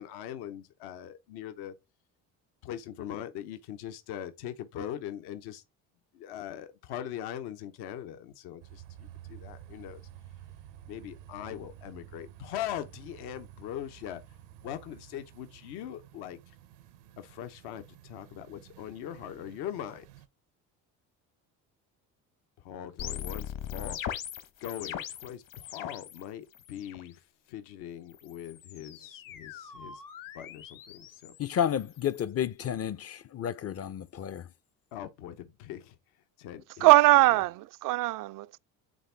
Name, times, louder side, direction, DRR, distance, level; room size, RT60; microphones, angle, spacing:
voice 1, 0.0-1.7 2.6-5.6 6.1-10.0 10.9-14.2 14.6-16.4 17.2-20.0 22.6-24.0 24.6-27.2 27.5-30.0 30.3-31.3 34.9-35.9 36.4-36.9 37.3-37.4, left 10 dB, 75° left, 1.1 m, -41 dB
sound 1, 8.6-20.3, right 12 dB, 80° right, 0.9 m, -51 dB
sound 2, 23.0-26.2 26.5-27.1 28.1-32.2, left 9 dB, 55° left, 1.2 m, -41 dB
voice 2, 31.4-34.5, left 9 dB, 40° left, 0.6 m, -31 dB
voice 3, 36.8-38.6, right 19 dB, 55° right, 0.5 m, -21 dB
8.9 x 3.7 x 3.4 m
supercardioid pair, 75°, 40 cm